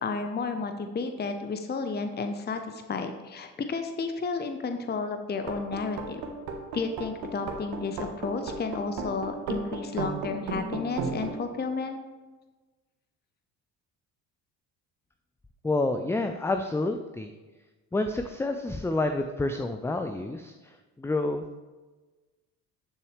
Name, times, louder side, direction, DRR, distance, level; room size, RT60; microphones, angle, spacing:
voice 1, 0.0-6.2 6.7-12.0, left 4 dB, 20° left, 7 dB, 0.8 m, -32 dB
sound 1, 5.5-11.3, right 3 dB, 65° right, 1.4 m, -34 dB
voice 2, 15.6-17.3 17.9-21.4, left 2 dB, 5° left, 7 dB, 0.4 m, -29 dB
12.0 x 6.9 x 3.2 m, 1.3 s
hypercardioid pair, 50°, 47 cm